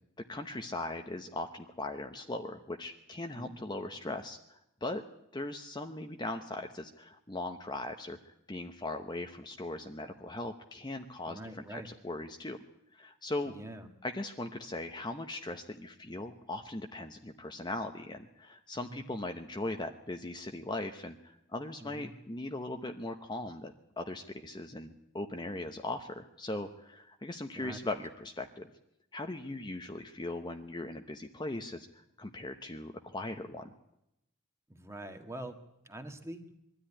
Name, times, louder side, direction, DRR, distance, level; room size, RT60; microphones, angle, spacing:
voice 1, 0.3-5.0 5.3-12.6 12.9-13.5 14.0-28.7 29.1-33.7, left 2 dB, 20° left, 5 dB, 0.9 m, -39 dB
voice 2, 11.3-11.9 13.4-13.9 18.7-19.1 21.8-22.1 27.5-27.8 34.7-35.6 35.8-36.4, right 1 dB, 15° right, 6 dB, 1.7 m, -44 dB
22.0 x 13.0 x 9.9 m, 0.83 s
head